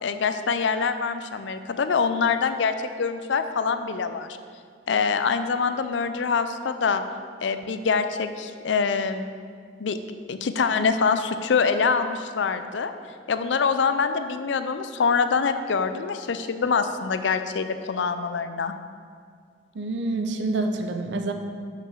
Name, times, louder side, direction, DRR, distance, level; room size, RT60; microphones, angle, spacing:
voice 1, 0.0-4.4 4.9-7.0 7.4-9.3 9.8-10.0 10.3-12.9 13.3-18.7, left 5 dB, 75° left, 10 dB, 0.5 m, -25 dB
voice 2, 19.7-21.3, right 2 dB, 70° right, 5 dB, 0.7 m, -27 dB
6.0 x 5.6 x 6.4 m, 2.1 s
head